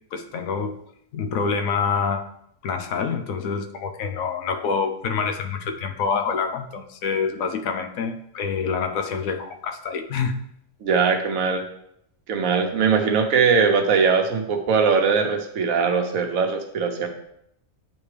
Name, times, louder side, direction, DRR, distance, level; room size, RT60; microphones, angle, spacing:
voice 1, 0.1-0.8 1.1-2.3 2.6-10.4, left 5 dB, 90° left, 7 dB, 1.1 m, -26 dB
voice 2, 10.8-11.7 12.3-17.1, right 5 dB, 85° right, 4 dB, 1.2 m, -21 dB
8.9 x 3.5 x 3.3 m, 0.73 s
omnidirectional pair, 1.4 m